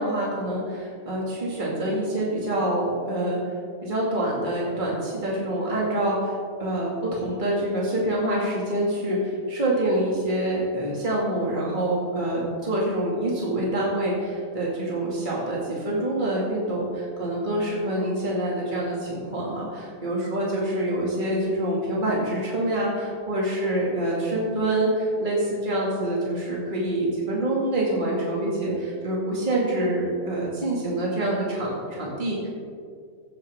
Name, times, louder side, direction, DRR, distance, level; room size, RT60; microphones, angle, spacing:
voice 1, 0.0-3.4 3.8-32.5, right 1 dB, 35° right, -5 dB, 2.4 m, -26 dB
16.0 x 9.6 x 3.6 m, 2.1 s
omnidirectional pair, 1.5 m